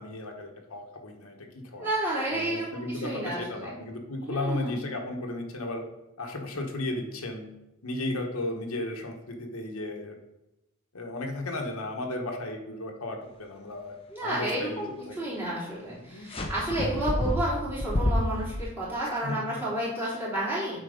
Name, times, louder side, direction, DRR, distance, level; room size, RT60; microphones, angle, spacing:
voice 1, 0.0-1.9 2.3-5.8 6.2-7.5 7.8-10.2 10.9-15.2 15.8-16.3 19.0-19.4, left 2 dB, 85° left, 2 dB, 1.1 m, -35 dB
voice 2, 1.8-3.7 4.2-4.8 14.1-20.8, right 1 dB, 10° right, -9 dB, 3.1 m, -31 dB
jungle.Parrot.Tambopata, 16.3-18.6, left 1 dB, 25° left, 0.8 m, -29 dB
7.9 x 4.4 x 5.0 m, 0.95 s
head